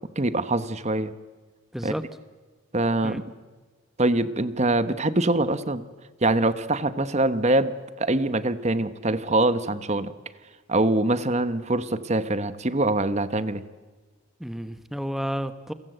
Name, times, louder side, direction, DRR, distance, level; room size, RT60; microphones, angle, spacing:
voice 1, 0.2-1.1 1.8-1.9 2.7-3.2 4.0-5.8 6.2-10.1 10.7-13.6, right 2 dB, 35° right, 13 dB, 1.1 m, -24 dB
voice 2, 14.4-15.7, equal, ahead, 10 dB, 1.0 m, -31 dB
29.0 x 23.5 x 8.0 m, 1.3 s
head